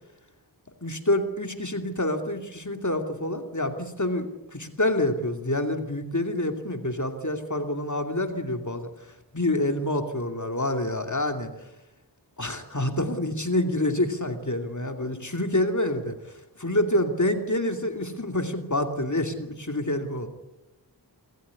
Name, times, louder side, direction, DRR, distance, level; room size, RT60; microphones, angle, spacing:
voice 1, 0.8-4.3 4.5-8.9 9.3-11.5 12.4-16.2 16.6-20.3, left 1 dB, 45° left, 5 dB, 2.7 m, -27 dB
28.5 x 14.0 x 9.7 m, 1.0 s
wide cardioid pair, 45°, 41 cm